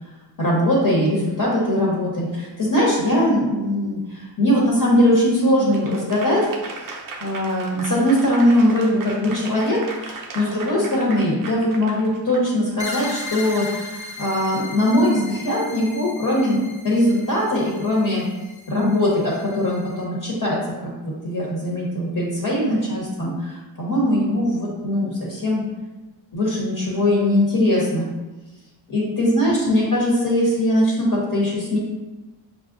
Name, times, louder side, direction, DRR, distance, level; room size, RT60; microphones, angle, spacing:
voice 1, 0.4-6.5 7.2-18.2 18.7-25.6 26.3-28.1 28.9-31.8, left 1 dB, 45° left, -5 dB, 0.9 m, -21 dB
Applause / Crowd, 5.7-12.9, right 3 dB, 45° right, 0.5 m, -37 dB
sound 1, 12.8-20.0, left 2 dB, 10° right, 0.8 m, -37 dB
6.0 x 2.0 x 2.5 m, 1.1 s
wide cardioid pair, 105°, 46 cm